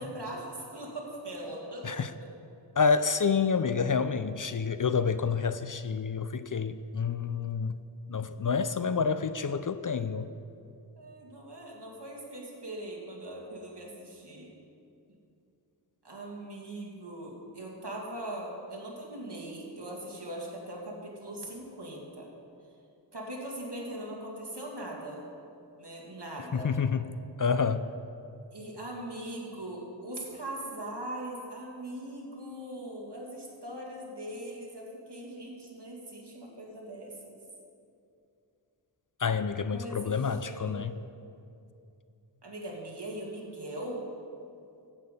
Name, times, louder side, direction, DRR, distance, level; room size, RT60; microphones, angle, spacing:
voice 1, 0.0-1.9 6.4-6.6 11.0-14.5 16.0-22.3 23.1-25.3 25.8-26.7 28.5-37.4 39.6-40.8 42.4-44.0, right 1 dB, 60° right, -2 dB, 2.6 m, -40 dB
voice 2, 2.8-7.8 8.1-10.3 26.5-27.0 27.4-27.9 39.2-40.9, left 5 dB, 45° left, 12 dB, 0.5 m, -28 dB
15.0 x 8.5 x 5.5 m, 2.6 s
wide cardioid pair, 50°, 45 cm